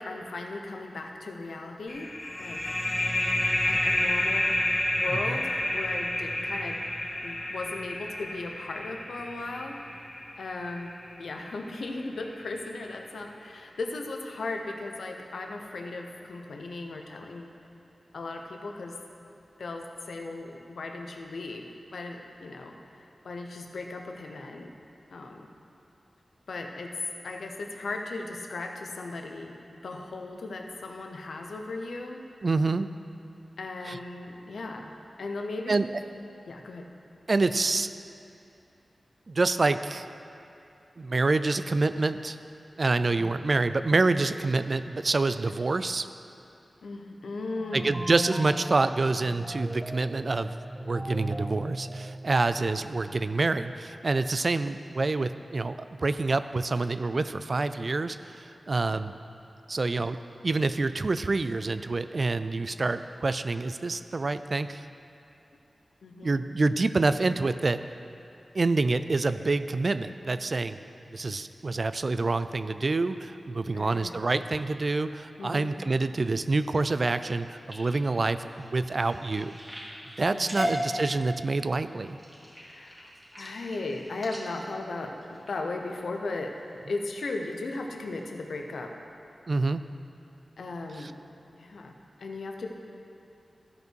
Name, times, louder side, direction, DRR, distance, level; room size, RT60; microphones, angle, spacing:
voice 1, 0.0-2.1 2.4-2.7 3.4-4.5 5.0-6.8 7.2-10.1 10.4-17.5 18.1-19.0 19.6-21.7 21.9-24.7 25.1-25.5 26.5-26.9 27.2-32.2 33.6-34.9 35.2-35.8 36.5-36.9 46.8-48.1 52.8-53.1 62.7-62.8 66.0-66.4 73.7-74.1 75.4-75.8 80.3-80.8 82.4-86.5 86.9-88.9 90.6-91.1 91.6-92.7, left 3 dB, 85° left, 3 dB, 0.8 m, -37 dB
sound 1, 1.9-11.2, left 1 dB, 60° left, 1.6 m, -30 dB
voice 2, 32.4-32.9 33.9-34.0 35.7-35.9 37.3-37.9 39.3-40.1 41.0-42.4 42.8-46.1 47.7-59.1 59.7-60.2 60.4-64.8 66.2-67.8 68.5-70.8 71.1-79.6 80.2-82.2 89.5-89.8 91.0-91.1, right 3 dB, 55° right, 12 dB, 0.3 m, -27 dB
sound 2, 47.5-53.0, right 1 dB, 10° right, 0.7 m, -38 dB
sound 3, 77.5-86.0 86.6-86.9 87.4-87.7 88.2-88.3 88.6-88.7, equal, 30° right, 2.3 m, -38 dB
14.0 x 5.4 x 4.6 m, 2.7 s
cardioid pair, 45°, 0 cm